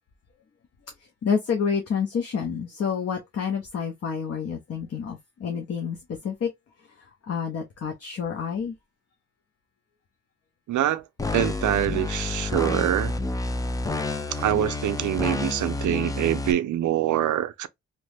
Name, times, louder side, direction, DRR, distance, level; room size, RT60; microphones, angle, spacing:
voice 1, 1.2-6.0 6.2-6.5 7.3-8.7, left 6 dB, 55° left, 0.7 m, -28 dB
voice 2, 10.7-11.0 11.3-13.1 14.3-17.7, right 12 dB, 75° right, 0.4 m, -25 dB
sound 1, 11.2-16.5, left 2 dB, 10° left, 0.3 m, -29 dB
2.9 x 2.0 x 3.3 m
cardioid pair, 100°, 30 cm